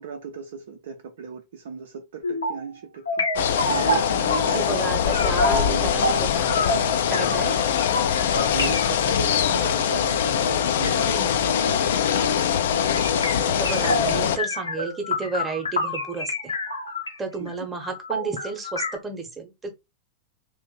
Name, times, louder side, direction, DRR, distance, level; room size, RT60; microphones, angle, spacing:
voice 1, 0.0-3.3 3.7-6.1 7.3-7.6 8.5-12.3 17.4-17.5, right 6 dB, 60° right, 0.6 m, -37 dB
sound 1, 2.2-2.7 3.1-4.8 5.1-17.2 17.5-17.6 17.8-19.0, left 1 dB, 75° left, 0.7 m, -28 dB
sound 2, 3.4-14.4, left 8 dB, 60° left, 0.4 m, -23 dB
voice 2, 4.5-6.5 7.1-7.5 11.0-11.4 13.2-16.5 17.2-19.8, right 4 dB, 15° right, 0.9 m, -32 dB
2.9 x 2.5 x 3.9 m
figure-of-eight pair, 90°, 0 cm